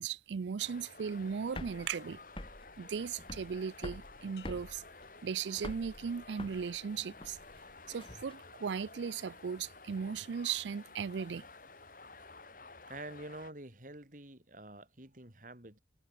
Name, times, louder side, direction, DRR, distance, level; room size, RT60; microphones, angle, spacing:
voice 1, 0.0-2.2 2.8-4.8 5.2-7.4 7.9-11.4, right 6 dB, 85° right, 0.4 m, -37 dB
sound 1, 0.6-13.5, left 3 dB, 50° left, 4.9 m, -53 dB
sound 2, 1.1-8.3, left 1 dB, 30° left, 2.5 m, -47 dB
sound 3, 4.4-6.1 6.6-7.1, left 9 dB, 70° left, 3.5 m, -65 dB
voice 2, 12.9-15.8, right 2 dB, 45° right, 4.3 m, -47 dB
head